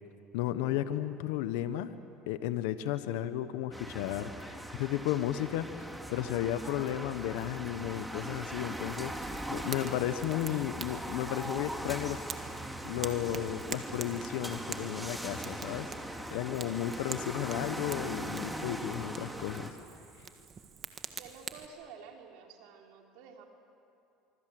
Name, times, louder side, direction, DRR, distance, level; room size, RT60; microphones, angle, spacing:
voice 1, 0.3-2.0 2.3-12.2 12.8-19.8, left 12 dB, 85° left, 12 dB, 1.0 m, -34 dB
sound 1, 3.7-19.7, right 1 dB, 5° right, 2.2 m, -40 dB
Fire, 9.2-21.7, right 6 dB, 35° right, 1.6 m, -46 dB
voice 2, 21.2-23.4, right 6 dB, 75° right, 2 dB, 3.3 m, -51 dB
24.5 x 24.5 x 7.7 m, 2.7 s
supercardioid pair, 110°, 0 cm